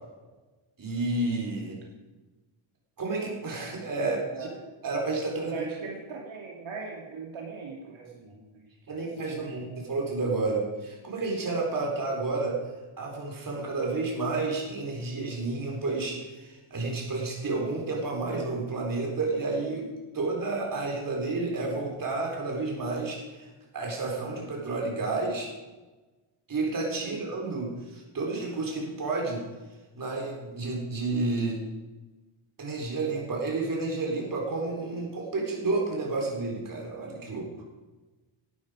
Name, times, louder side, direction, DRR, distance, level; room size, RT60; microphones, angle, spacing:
voice 1, 0.8-1.8 3.0-4.2 4.8-5.7 8.9-12.7 13.0-19.9 20.1-23.5 23.7-25.5 26.5-29.5 29.9-31.6 32.6-37.5, right 3 dB, 40° right, 0 dB, 4.3 m, -30 dB
voice 2, 4.0-4.6 5.3-9.6 18.1-18.5 27.0-27.2, right 5 dB, 70° right, -1 dB, 2.9 m, -41 dB
18.0 x 12.5 x 5.1 m, 1.2 s
wide cardioid pair, 180°, 50 cm